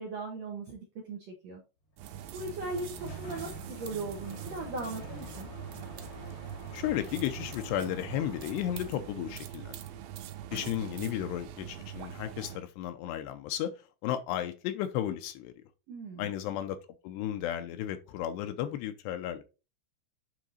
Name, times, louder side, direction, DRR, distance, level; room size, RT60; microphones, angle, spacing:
voice 1, 0.0-1.6 2.3-5.5 15.9-16.3, right 3 dB, 70° right, 1.6 m, -38 dB
Sliding door, 2.0-9.4, left 1 dB, 50° left, 1.3 m, -47 dB
sound 1, 2.0-12.6, right 11 dB, 85° right, 3.2 m, -43 dB
voice 2, 6.7-9.8 10.5-13.7 14.0-15.5 16.2-16.8 17.0-19.4, left 11 dB, 80° left, 2.7 m, -34 dB
9.2 x 3.8 x 4.0 m
omnidirectional pair, 5.1 m